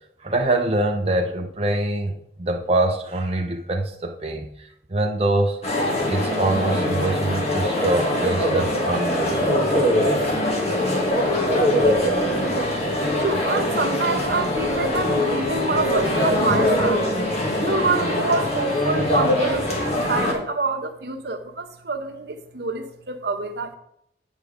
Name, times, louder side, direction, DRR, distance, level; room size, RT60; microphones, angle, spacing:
voice 1, 0.2-5.6 6.1-9.6, right 2 dB, 35° right, 2 dB, 0.6 m, -24 dB
sound 1, 5.6-20.3, left 1 dB, 35° left, 1.8 m, -22 dB
voice 2, 13.2-17.0 17.7-23.8, right 3 dB, 65° right, 6 dB, 0.9 m, -26 dB
9.0 x 4.6 x 5.0 m, 0.73 s
head